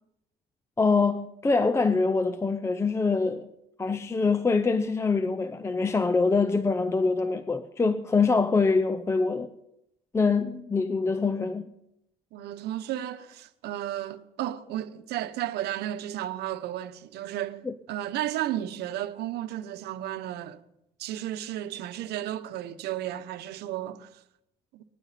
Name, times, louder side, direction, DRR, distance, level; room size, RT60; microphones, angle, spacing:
voice 1, 0.8-3.5 3.8-9.5 10.1-11.7 17.7-17.8, left 4 dB, 15° left, 0.6 m, -24 dB
voice 2, 12.3-20.6 21.0-24.2 24.7-24.8, right 12 dB, 75° right, 0.9 m, -33 dB
19.5 x 12.0 x 4.2 m
cardioid pair, 110°, 17 cm